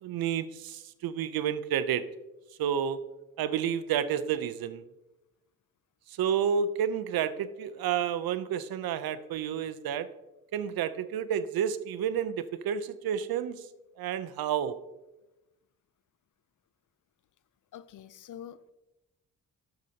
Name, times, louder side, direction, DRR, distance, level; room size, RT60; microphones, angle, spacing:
voice 1, 0.0-2.1 2.6-3.0 3.4-4.8 6.1-10.1 10.5-13.6 14.0-14.8, right 8 dB, 80° right, 13 dB, 0.6 m, -30 dB
voice 2, 17.7-18.7, left 10 dB, 60° left, 16 dB, 0.5 m, -46 dB
12.0 x 6.6 x 2.8 m, 0.99 s
cardioid pair, 95°, 35 cm